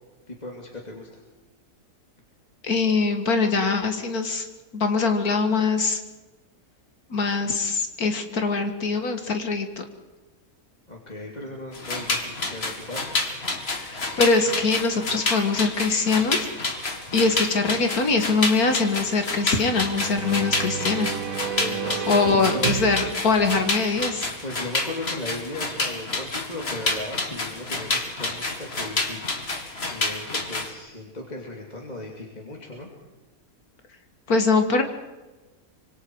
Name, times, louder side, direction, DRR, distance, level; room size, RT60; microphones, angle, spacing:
voice 1, 0.3-1.2 10.9-13.2 21.6-22.7 24.4-29.5 29.9-32.9, left 1 dB, 25° left, -1 dB, 3.0 m, -36 dB
voice 2, 2.6-4.5 4.7-6.0 7.1-9.8 13.8-16.5 17.1-21.1 22.1-24.3 34.3-34.8, left 4 dB, 75° left, 6 dB, 2.3 m, -23 dB
sound 1, 11.7-30.7, left 2 dB, 40° left, 2.3 m, -29 dB
sound 2, 19.6-24.3, right 8 dB, 70° right, 1.3 m, -32 dB
25.5 x 25.0 x 4.8 m, 1.1 s
omnidirectional pair, 1.6 m